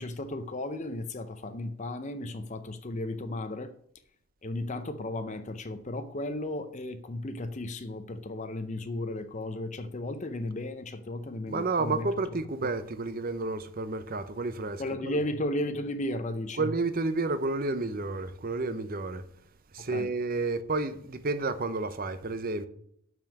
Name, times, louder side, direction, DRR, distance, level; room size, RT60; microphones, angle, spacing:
voice 1, 0.0-3.7 4.4-12.1 14.8-16.7 19.8-20.1, left 1 dB, 35° left, 0.6 m, -34 dB
voice 2, 11.5-15.2 16.6-19.2 19.7-22.7, right 3 dB, 40° right, 0.7 m, -31 dB
6.8 x 6.1 x 7.2 m
head